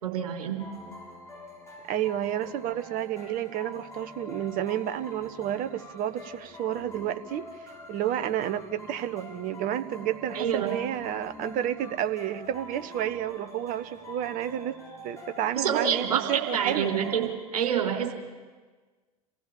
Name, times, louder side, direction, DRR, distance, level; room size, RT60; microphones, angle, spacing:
voice 1, 0.0-0.6 10.3-10.7 15.5-17.2 17.5-18.1, right 8 dB, 70° right, 2 dB, 4.1 m, -27 dB
sound 1, 0.6-17.3, left 2 dB, 15° left, 7.3 m, -45 dB
voice 2, 1.9-17.0, right 11 dB, 45° right, 11 dB, 1.2 m, -31 dB
28.0 x 15.5 x 7.2 m, 1.4 s
figure-of-eight pair, 75°, 20 cm